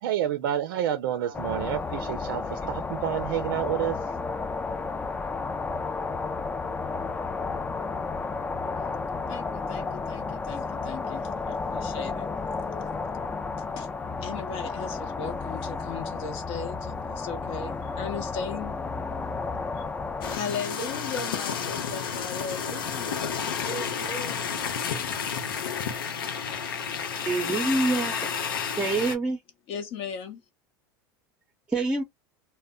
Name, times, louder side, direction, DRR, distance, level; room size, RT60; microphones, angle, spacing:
voice 1, 0.0-4.2, right 11 dB, 75° right, 0.4 m, -29 dB
sound 1, 1.3-20.4, left 4 dB, 15° left, 0.3 m, -32 dB
voice 2, 9.3-12.6 13.6-13.9 14.2-18.7 19.7-19.9 20.3-24.4 29.7-30.4, left 5 dB, 55° left, 0.9 m, -37 dB
sound 2, 20.2-29.2, left 7 dB, 85° left, 0.6 m, -31 dB
voice 3, 27.3-28.3 28.8-29.4 31.7-32.0, right 3 dB, 10° right, 0.7 m, -26 dB
2.1 x 2.1 x 3.6 m
hypercardioid pair, 100°, 11 cm